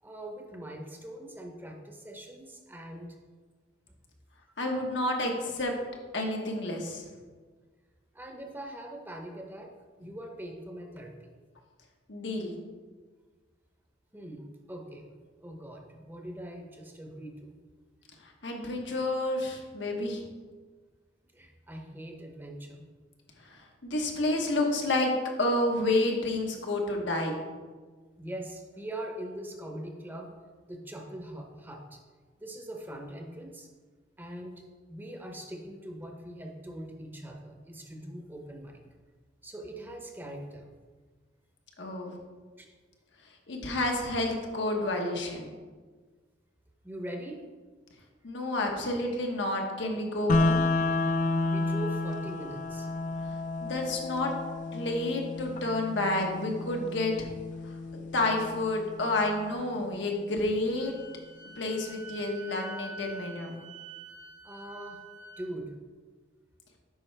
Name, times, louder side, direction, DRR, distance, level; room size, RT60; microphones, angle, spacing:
voice 1, 0.0-3.2 8.1-9.7 10.0-11.3 14.1-15.1 15.4-17.6 21.3-22.8 23.6-23.7 28.2-30.3 30.6-32.0 32.4-33.7 34.2-34.6 34.9-38.8 39.4-40.8 42.6-42.7 46.8-47.4 51.5-52.9 64.4-65.0 65.4-65.7, right 1 dB, 10° right, 2 dB, 0.7 m, -42 dB
voice 2, 4.6-5.7 6.1-7.0 12.1-12.6 18.4-20.2 23.4-25.1 25.4-27.4 41.8-42.1 43.5-45.5 48.2-50.7 53.6-54.3 54.7-57.3 57.6-57.7 58.1-60.9 61.6-63.6, left 2 dB, 85° left, 1 dB, 1.1 m, -30 dB
sound 1, 50.3-60.3, left 2 dB, 45° left, 0.4 m, -31 dB
Wind instrument woodwind instrument, 60.7-65.4, right 3 dB, 85° right, 1.4 m, -46 dB
8.5 x 5.3 x 3.4 m, 1.4 s
head